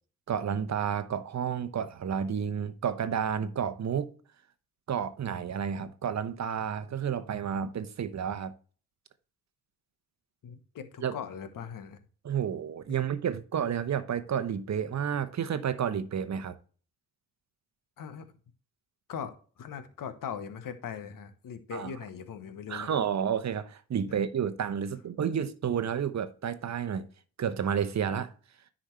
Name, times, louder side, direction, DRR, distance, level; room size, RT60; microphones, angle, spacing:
voice 1, 0.3-4.1 4.9-8.5 11.0-11.1 12.2-16.6 21.7-21.9 22.7-27.1 27.4-28.3, right 8 dB, 45° right, 1.0 m, -31 dB
voice 2, 10.4-12.0 12.9-13.0 18.0-18.3 19.1-22.9, left 7 dB, 55° left, 1.3 m, -40 dB
10.0 x 5.0 x 3.2 m
hypercardioid pair, 45°, 39 cm